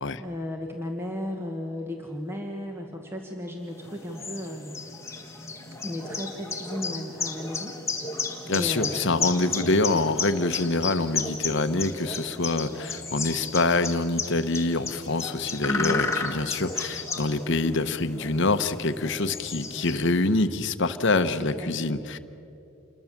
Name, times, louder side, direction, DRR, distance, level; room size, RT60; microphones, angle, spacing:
voice 1, 0.2-4.7 5.8-9.4 15.6-16.1 21.6-21.7, left 1 dB, 10° right, 1 dB, 1.5 m, -35 dB
sound 1, 3.8-20.3, left 4 dB, 15° left, 1.8 m, -33 dB
voice 2, 8.5-22.2, left 2 dB, 55° left, 9 dB, 0.9 m, -25 dB
28.0 x 22.0 x 7.3 m, 2.8 s
head